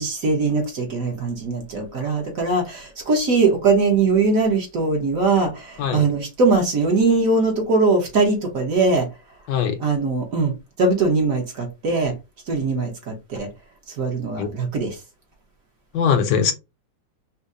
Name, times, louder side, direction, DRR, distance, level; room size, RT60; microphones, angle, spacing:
voice 1, 0.0-9.1 9.8-10.5 10.8-12.1 12.5-13.5 14.0-15.0, right 3 dB, 55° right, 1.2 m, -21 dB
voice 2, 15.9-16.5, left 7 dB, 75° left, 1.3 m, -20 dB
5.4 x 2.1 x 2.5 m
omnidirectional pair, 2.0 m